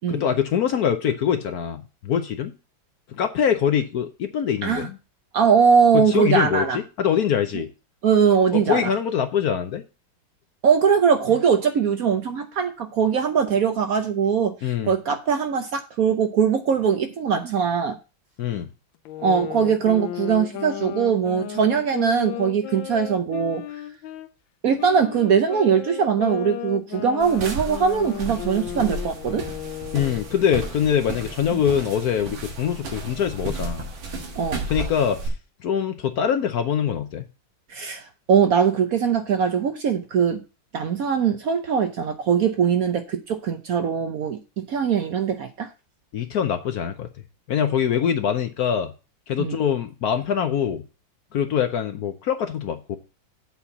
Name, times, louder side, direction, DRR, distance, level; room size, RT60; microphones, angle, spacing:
voice 1, 0.1-2.5 3.2-5.0 5.9-7.7 8.5-9.8 14.6-14.9 18.4-18.7 29.9-33.9 34.7-35.3 35.6-37.3 46.1-47.1 47.5-48.9 49.3-50.8 51.3-53.0, left 8 dB, 65° left, 7 dB, 1.0 m, -23 dB
voice 2, 5.3-6.8 8.0-8.9 10.6-18.0 19.2-23.6 24.6-29.4 34.4-34.6 37.7-38.0 38.3-40.4 40.7-45.7 49.4-49.6, right 7 dB, 60° right, 7 dB, 1.0 m, -21 dB
sound 1, 19.1-24.3 24.8-30.4, left 12 dB, 85° left, 1.4 m, -34 dB
sound 2, 27.2-35.3, right 3 dB, 85° right, 2.4 m, -33 dB
8.0 x 4.3 x 7.1 m, 0.31 s
omnidirectional pair, 2.1 m